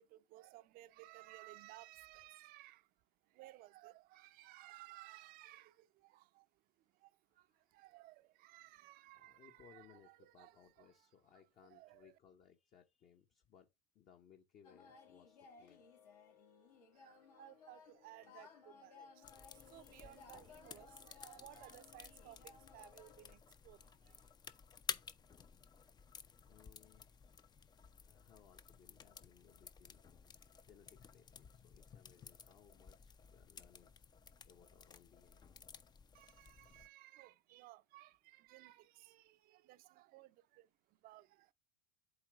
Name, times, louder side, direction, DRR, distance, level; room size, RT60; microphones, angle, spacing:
voice 1, 0.0-11.1 11.6-12.2 16.9-24.3 36.1-41.5, right 17 dB, 45° right, 0.5 m, -59 dB
voice 2, 9.1-15.9 26.3-27.8 28.0-35.5, left 8 dB, 40° left, 0.9 m, -66 dB
sound 1, 14.6-23.4, left 5 dB, 70° left, 1.9 m, -61 dB
sound 2, 19.2-36.9, left 6 dB, 20° left, 0.5 m, -54 dB
8.1 x 3.0 x 4.7 m
hypercardioid pair, 80°, 21 cm